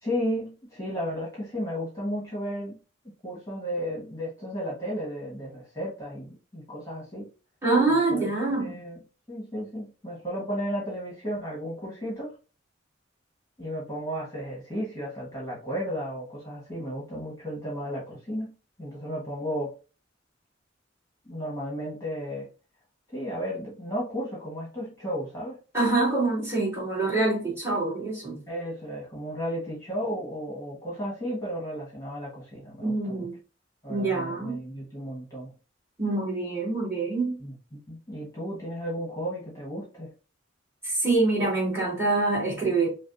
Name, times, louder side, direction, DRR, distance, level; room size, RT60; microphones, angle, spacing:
voice 1, 0.0-2.8 3.2-7.3 7.9-8.2 8.6-9.0 9.3-12.3 13.6-18.5 18.8-19.7 21.2-22.5 23.1-25.6 28.5-33.3 33.8-35.5 37.4-37.5 37.9-40.1, equal, 15° left, 1.4 m, -34 dB
voice 2, 7.6-8.7 25.7-28.4 32.8-33.3 33.9-34.6 36.0-37.4 40.8-42.9, right 3 dB, 15° right, 2.2 m, -25 dB
6.0 x 2.2 x 2.6 m
head